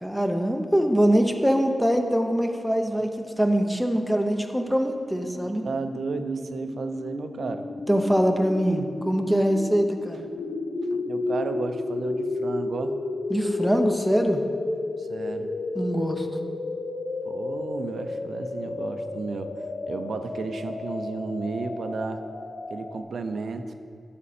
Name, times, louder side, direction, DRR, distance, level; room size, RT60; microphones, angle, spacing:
voice 1, 0.0-3.1 3.4-5.6 7.9-10.3 13.3-14.4 15.7-16.3, equal, ahead, 4 dB, 0.6 m, -23 dB
sound 1, 4.4-23.0, left 3 dB, 80° left, 0.6 m, -33 dB
voice 2, 5.6-7.7 10.9-12.9 15.0-15.5 16.2-16.3 17.3-19.5 19.9-22.2 22.7-23.7, right 4 dB, 80° right, 8 dB, 0.5 m, -33 dB
12.5 x 5.1 x 4.3 m, 2.5 s
wide cardioid pair, 110°, 0 cm